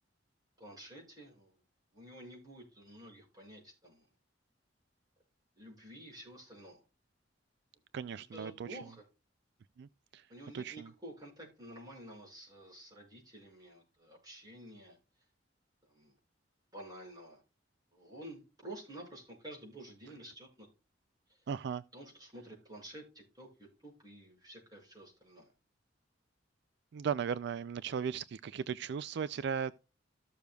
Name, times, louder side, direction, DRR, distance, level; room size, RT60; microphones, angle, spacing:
voice 1, 0.6-1.6 1.9-4.1 5.6-6.8 8.2-9.0 10.3-15.0 15.8-16.2 16.7-17.4 17.9-20.7 21.3-21.4 21.9-25.5 29.3-29.4, right 1 dB, 20° right, 5.8 m, -51 dB
voice 2, 7.9-8.8 9.8-10.3 10.5-10.9 21.5-21.8 26.9-29.7, right 7 dB, 65° right, 0.3 m, -37 dB
14.5 x 6.8 x 2.3 m
head